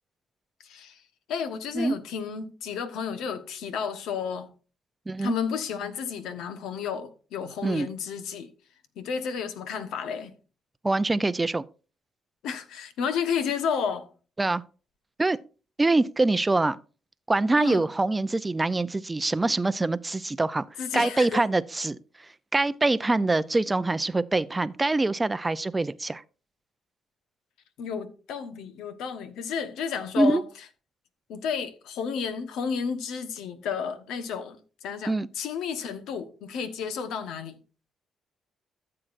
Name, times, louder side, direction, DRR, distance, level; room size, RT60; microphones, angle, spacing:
voice 1, 0.6-1.0 1.3-4.5 5.2-8.5 9.0-10.3 12.4-14.1 17.6-17.9 20.8-21.4 27.8-30.4 31.3-37.6, left 6 dB, 85° left, 1.2 m, -32 dB
voice 2, 10.8-11.7 14.4-14.6 15.2-15.4 15.8-16.8 17.3-20.7 20.9-22.0 22.5-26.2 30.2-30.4 35.1-35.3, right 2 dB, 20° right, 0.5 m, -24 dB
14.0 x 7.7 x 2.6 m
cardioid pair, 90°, 0 cm